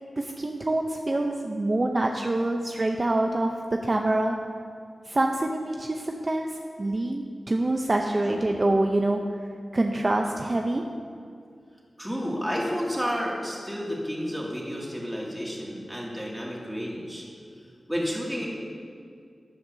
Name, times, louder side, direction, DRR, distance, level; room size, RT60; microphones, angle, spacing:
voice 1, 0.2-4.4 5.1-9.2 9.7-10.8, right 2 dB, 35° right, 2 dB, 0.6 m, -26 dB
voice 2, 12.0-17.2 17.9-18.5, equal, 5° right, -4 dB, 2.2 m, -31 dB
13.5 x 10.0 x 2.7 m, 2.3 s
wide cardioid pair, 95°, 0 cm